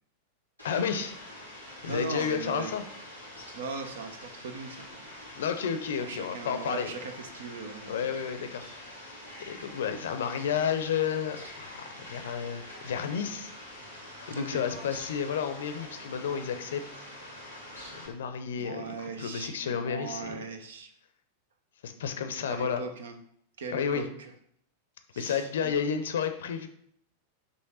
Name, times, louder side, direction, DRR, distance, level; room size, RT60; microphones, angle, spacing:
voice 1, 0.6-1.1 1.8-2.8 5.3-6.9 7.9-8.6 9.4-13.5 14.3-16.8 18.1-20.4 21.8-22.8 23.7-24.1 25.2-26.7, left 7 dB, 60° left, 8 dB, 0.6 m, -31 dB
Fowl, 0.6-18.1, left 1 dB, 85° right, 1.6 m, -45 dB
voice 2, 1.9-2.7 3.5-5.0 6.0-8.2 14.4-14.6 18.6-20.9 22.5-23.2 23.6-24.3 25.1-25.8, right 4 dB, 65° right, 7 dB, 0.8 m, -39 dB
5.5 x 3.2 x 5.5 m, 0.68 s
figure-of-eight pair, 90°, 0 cm